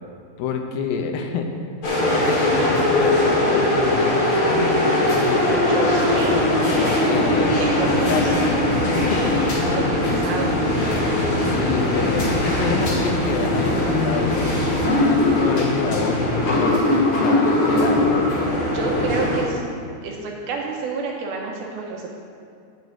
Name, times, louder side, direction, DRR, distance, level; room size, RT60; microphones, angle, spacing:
voice 1, 0.4-1.5 2.0-6.1 7.0-9.4 10.1-10.3 11.5-14.6 15.1-18.2 18.9-19.1, left 6 dB, 80° left, 5 dB, 2.8 m, -28 dB
sound 1, 1.8-19.4, left 1 dB, 40° left, 2.3 m, -20 dB
voice 2, 5.7-6.4 7.6-8.2 8.9-9.1 9.7-10.7 18.7-19.6 20.0-22.2, right 4 dB, 75° right, 0 dB, 2.7 m, -29 dB
7.9 x 6.6 x 8.0 m, 2.4 s
omnidirectional pair, 4.8 m